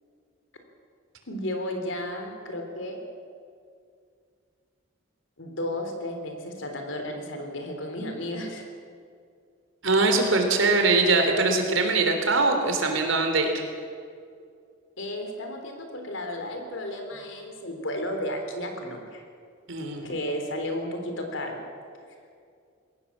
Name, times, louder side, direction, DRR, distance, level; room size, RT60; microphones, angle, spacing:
voice 1, 1.3-3.0 5.4-8.7 15.0-19.2 20.0-21.6, left 1 dB, 70° left, 4 dB, 3.8 m, -33 dB
voice 2, 9.8-13.6 19.7-20.1, right 3 dB, 70° right, 5 dB, 3.4 m, -22 dB
22.0 x 18.0 x 7.4 m, 2.3 s
head